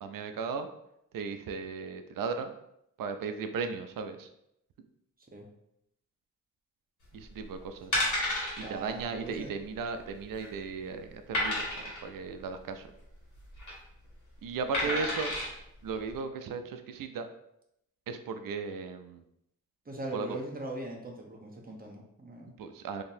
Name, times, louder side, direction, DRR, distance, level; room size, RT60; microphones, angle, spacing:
voice 1, 0.0-0.7 1.1-2.5 3.0-4.3 7.1-8.0 8.6-12.9 14.4-15.3 15.8-17.3 18.1-19.2 20.1-20.4 22.6-23.0, right 5 dB, 80° right, 8 dB, 0.5 m, -36 dB
sound 1, 7.3-7.4 7.9-8.6 9.0-9.2 9.4-9.5 10.1-10.6 11.3-12.0 13.4-13.7 14.7-15.5 16.1-16.2, left 1 dB, 60° left, 1.5 m, -31 dB
voice 2, 8.6-9.5 14.8-15.1 19.9-22.5, right 2 dB, 25° right, 0 dB, 0.8 m, -40 dB
3.7 x 2.8 x 2.6 m, 0.78 s
cardioid pair, 85°, 33 cm